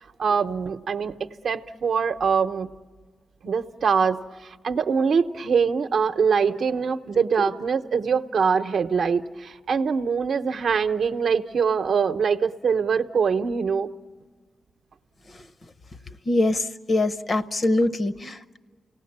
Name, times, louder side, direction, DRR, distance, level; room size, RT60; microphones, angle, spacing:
voice 1, 0.2-2.7 3.4-13.9, right 6 dB, 65° right, 8 dB, 0.8 m, -23 dB
voice 2, 16.3-18.6, left 2 dB, 40° left, 10 dB, 0.7 m, -24 dB
29.0 x 18.0 x 8.6 m, 1.5 s
wide cardioid pair, 110°, 0 cm